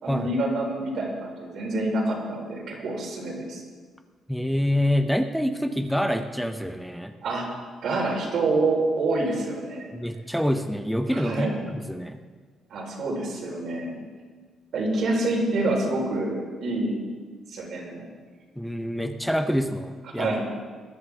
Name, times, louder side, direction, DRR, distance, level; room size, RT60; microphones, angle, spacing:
voice 1, 0.0-3.6 7.2-7.4 7.8-9.9 11.1-11.5 12.7-14.0 14.7-17.0 17.5-18.1 20.2-20.4, right 2 dB, 70° right, -2 dB, 4.4 m, -27 dB
voice 2, 4.3-7.1 9.9-12.2 18.6-20.3, equal, ahead, 6 dB, 0.7 m, -26 dB
20.5 x 11.0 x 3.6 m, 1.5 s
cardioid pair, 90°, 0 cm